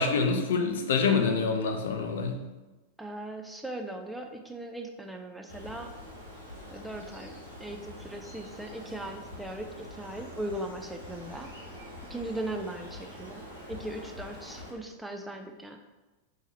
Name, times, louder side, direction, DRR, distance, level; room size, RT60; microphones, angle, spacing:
voice 1, 0.0-2.4, left 4 dB, 60° left, 4 dB, 0.5 m, -26 dB
voice 2, 3.0-5.9 6.6-7.3 7.6-11.5 12.1-13.4 13.7-15.8, right 1 dB, 5° right, 3 dB, 0.4 m, -38 dB
Bird, 5.5-14.7, left 1 dB, 80° right, 1.2 m, -45 dB
3.7 x 2.9 x 4.2 m, 1.1 s
figure-of-eight pair, 90°, 0 cm